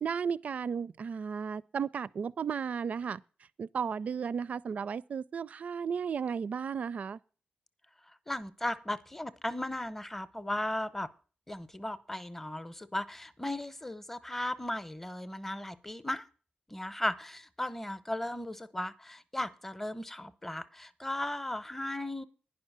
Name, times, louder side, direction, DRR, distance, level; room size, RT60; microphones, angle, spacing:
voice 1, 0.0-3.2 3.6-7.2, right 6 dB, 50° right, 0.4 m, -34 dB
voice 2, 8.3-11.1 11.5-16.2 16.7-22.2, left 1 dB, 10° left, 0.8 m, -36 dB
10.5 x 5.6 x 8.0 m
wide cardioid pair, 140°, 3 cm